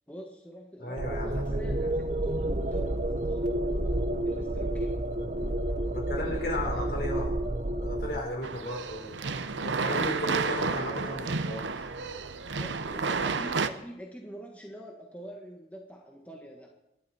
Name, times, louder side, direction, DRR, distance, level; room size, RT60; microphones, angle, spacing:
voice 1, 0.1-3.6 4.2-5.0 12.6-16.7, equal, 10° left, 0 dB, 1.6 m, -44 dB
voice 2, 0.8-1.9 5.9-7.4 7.8-9.2 9.5-11.9, left 1 dB, 55° left, 1 dB, 4.7 m, -35 dB
sound 1, 1.0-8.2, right 1 dB, 40° right, 0.9 m, -30 dB
sound 2, 8.4-13.7, right 4 dB, 85° right, 0.9 m, -31 dB
28.0 x 11.5 x 4.4 m, 0.84 s
head